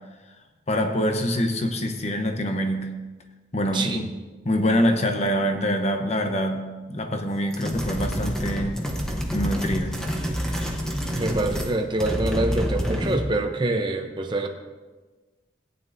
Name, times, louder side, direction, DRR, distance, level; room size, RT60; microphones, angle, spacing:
voice 1, 0.7-2.9 3.5-4.0 4.4-8.8 9.3-10.0, equal, 35° left, 5 dB, 0.9 m, -25 dB
voice 2, 3.7-4.0 11.2-14.5, right 2 dB, 25° right, 4 dB, 0.8 m, -25 dB
sound 1, 7.5-11.7 12.0-13.3, equal, 5° left, 1.0 m, -28 dB
15.5 x 9.4 x 2.7 m, 1.3 s
head